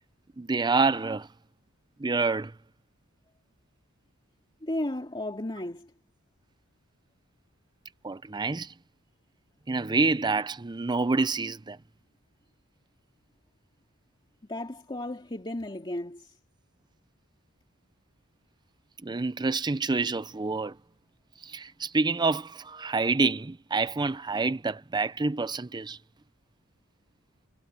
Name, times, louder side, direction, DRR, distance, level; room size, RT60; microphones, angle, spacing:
voice 1, 0.4-1.3 2.0-2.5 8.0-8.7 9.7-11.8 19.0-20.7 21.5-26.0, right 3 dB, 20° right, 0.5 m, -27 dB
voice 2, 4.6-5.9 14.5-16.3, left 1 dB, 25° left, 2.4 m, -34 dB
head